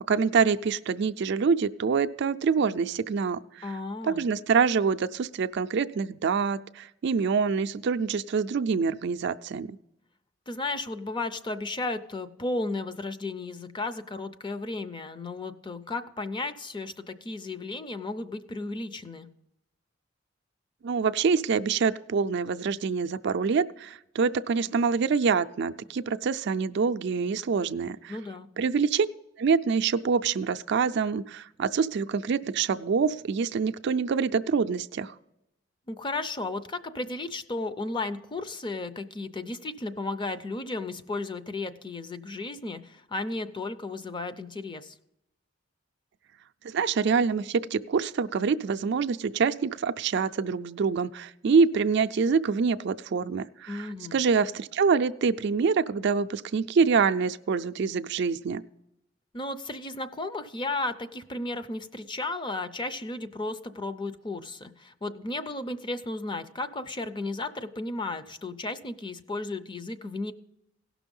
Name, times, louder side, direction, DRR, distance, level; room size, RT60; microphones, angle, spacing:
voice 1, 0.1-3.7 4.0-9.8 20.8-28.2 28.6-29.1 29.4-35.1 46.6-58.6, right 5 dB, 60° right, 10 dB, 0.4 m, -26 dB
voice 2, 3.6-4.2 10.5-19.3 28.1-28.5 35.9-44.9 53.7-54.2 59.3-70.3, left 2 dB, 25° left, 11 dB, 0.5 m, -34 dB
16.5 x 6.1 x 5.3 m, 0.86 s
head